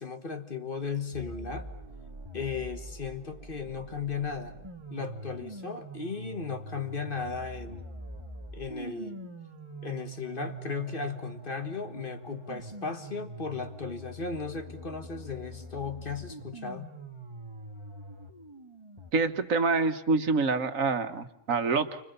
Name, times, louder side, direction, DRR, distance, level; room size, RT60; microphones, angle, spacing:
voice 1, 0.0-1.7 2.3-4.6 4.9-7.9 8.5-9.3 9.8-16.9, left 5 dB, 40° left, 8 dB, 1.8 m, -36 dB
sound 1, 1.1-19.1, right 1 dB, 20° right, 1.9 m, -44 dB
voice 2, 19.1-22.0, right 4 dB, 90° right, 8 dB, 1.8 m, -26 dB
29.5 x 25.5 x 6.9 m, 0.67 s
omnidirectional pair, 1.4 m